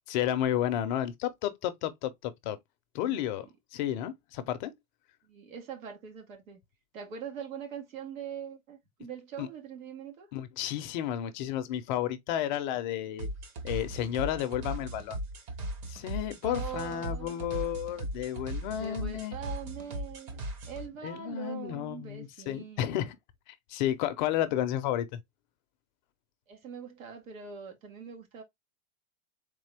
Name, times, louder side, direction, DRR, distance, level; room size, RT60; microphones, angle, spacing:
voice 1, 0.1-2.6 2.9-3.5 3.7-4.7 9.4-9.5 10.3-13.3 13.6-15.2 15.9-19.4 21.0-23.2 23.5-25.2, left 11 dB, 35° left, 0.6 m, -32 dB
voice 2, 3.0-3.5 5.3-6.6 6.9-10.3 16.4-17.3 18.7-23.1 26.5-28.4, right 7 dB, 80° right, 2.1 m, -43 dB
sound 1, 13.2-20.9, right 1 dB, 30° right, 1.1 m, -38 dB
3.8 x 3.7 x 3.3 m
supercardioid pair, 150°, 40 cm